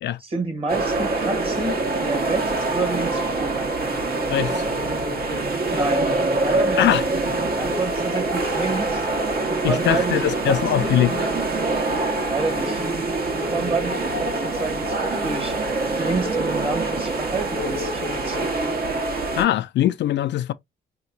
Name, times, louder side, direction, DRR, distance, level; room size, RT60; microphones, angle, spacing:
voice 1, 0.2-3.7 5.7-6.8 7.5-9.1 9.5-10.9 12.2-12.8 13.5-15.5 16.0-18.5, right 3 dB, 30° right, 1.6 m, -29 dB
sound 1, 0.7-19.4, right 2 dB, 50° right, 1.3 m, -24 dB
voice 2, 4.3-4.7 6.8-7.0 9.6-11.3 19.4-20.5, left 12 dB, 65° left, 0.4 m, -21 dB
4.3 x 2.8 x 2.6 m
cardioid pair, 90°, 20 cm